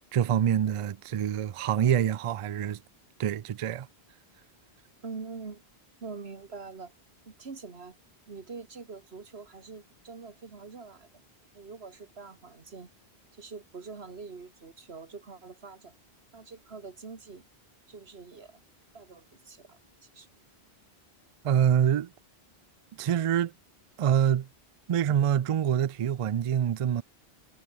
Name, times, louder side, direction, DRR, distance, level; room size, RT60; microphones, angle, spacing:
voice 1, 0.1-2.8 3.2-3.9 21.4-22.1 23.0-23.5 24.0-24.5 24.9-27.0, right 9 dB, 55° right, 0.3 m, -25 dB
voice 2, 5.0-5.6 6.0-6.9 7.3-8.0 8.3-11.1 11.5-12.9 13.3-15.9 16.3-17.4 17.9-18.6 18.9-20.3, right 4 dB, 80° right, 2.1 m, -44 dB
omnidirectional pair, 1.0 m